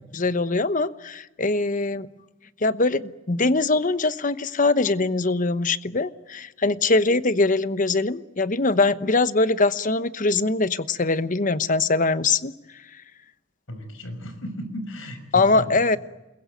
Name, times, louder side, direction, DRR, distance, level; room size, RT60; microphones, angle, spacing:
voice 1, 0.1-2.1 2.6-12.5 15.3-16.0, left 3 dB, 40° left, 13 dB, 1.0 m, -22 dB
voice 2, 13.7-15.8, equal, 90° left, 9 dB, 6.1 m, -35 dB
28.5 x 22.0 x 9.2 m, 1.0 s
head